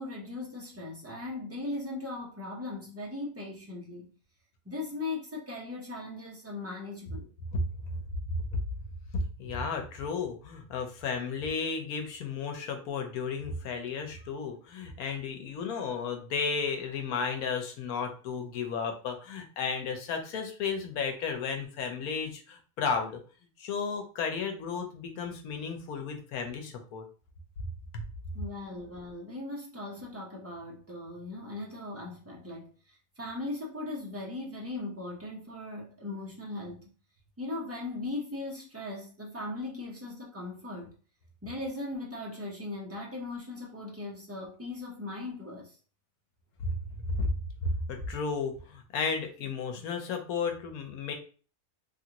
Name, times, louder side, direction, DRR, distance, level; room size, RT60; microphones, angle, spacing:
voice 1, 0.0-4.1 4.7-7.3 28.3-36.9 37.4-40.9 41.4-45.8, left 2 dB, 20° right, 0.4 m, -38 dB
voice 2, 9.1-23.2 23.6-27.0 27.9-28.0 46.6-46.8 47.1-47.3 47.6-51.1, left 5 dB, 90° left, 1.2 m, -33 dB
3.2 x 2.5 x 2.8 m
omnidirectional pair, 1.5 m